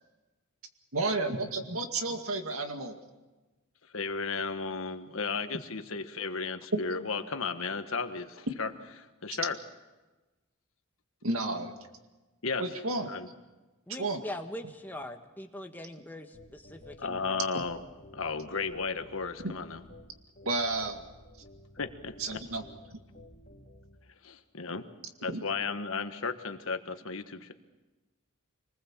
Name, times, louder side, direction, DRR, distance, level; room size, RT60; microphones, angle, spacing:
voice 1, 0.9-3.0 6.7-6.8 8.5-8.6 11.2-11.8 12.6-13.1 14.0-14.2 19.4-19.5 20.5-21.0 22.2-22.6 22.9-23.0 25.3-25.4, right 2 dB, 85° right, 6 dB, 2.1 m, -31 dB
voice 2, 3.9-8.7 9.2-9.5 12.4-12.6 13.1-13.3 17.0-17.8 18.1-19.8 21.8-22.4 24.2-24.8 25.2-27.5, left 4 dB, 75° left, 8 dB, 1.5 m, -34 dB
voice 3, 13.9-17.4, left 1 dB, 10° left, 4 dB, 1.5 m, -42 dB
sound 1, 16.3-24.0, left 1 dB, 35° left, 3.0 m, -53 dB
26.0 x 20.0 x 7.4 m, 1.2 s
head